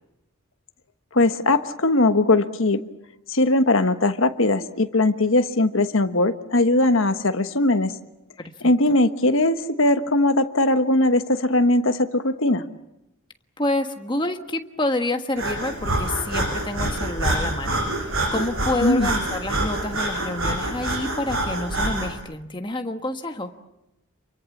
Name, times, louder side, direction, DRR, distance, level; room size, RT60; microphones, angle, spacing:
voice 1, 1.1-2.8 3.3-7.9 8.6-12.6 18.8-19.1, left 2 dB, 60° left, 9 dB, 1.3 m, -20 dB
voice 2, 8.6-9.0 13.6-23.5, left 2 dB, 20° left, 6 dB, 1.5 m, -28 dB
Breathing, 15.4-22.1, right 1 dB, 65° right, 7.8 m, -26 dB
28.5 x 23.0 x 7.3 m, 0.91 s
head